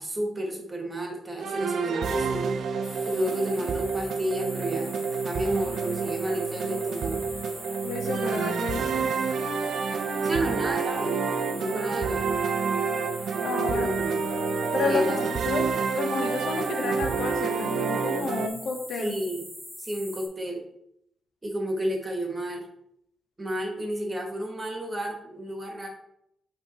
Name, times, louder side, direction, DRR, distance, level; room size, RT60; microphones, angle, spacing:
voice 1, 0.0-2.5 3.0-7.2 10.2-11.1 11.6-12.3 13.7-14.2 14.8-15.3 19.0-19.4 19.8-20.6 21.4-22.6 23.4-25.9, right 1 dB, 20° right, 1 dB, 1.5 m, -31 dB
sound 1, 1.4-18.5, right 5 dB, 75° right, 0.5 m, -28 dB
sound 2, 2.8-20.3, equal, 10° left, 2.5 m, -43 dB
voice 2, 7.8-9.1 13.4-14.0 14.7-15.7 15.9-19.2, left 4 dB, 75° left, 4 dB, 1.0 m, -31 dB
6.9 x 3.2 x 4.3 m, 0.75 s
cardioid pair, 115°, 0 cm